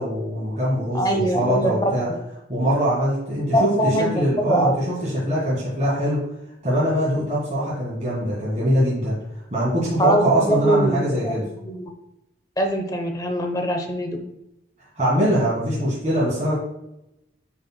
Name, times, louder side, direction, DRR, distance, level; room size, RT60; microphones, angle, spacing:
voice 1, 0.0-2.1 2.5-6.2 6.6-9.2 9.5-11.5 15.0-16.5, equal, 35° right, -8 dB, 2.2 m, -22 dB
voice 2, 0.9-1.9 3.5-4.7 10.0-11.9 12.6-14.2, right 1 dB, 20° left, 4 dB, 0.8 m, -23 dB
9.7 x 4.5 x 2.3 m, 0.87 s
head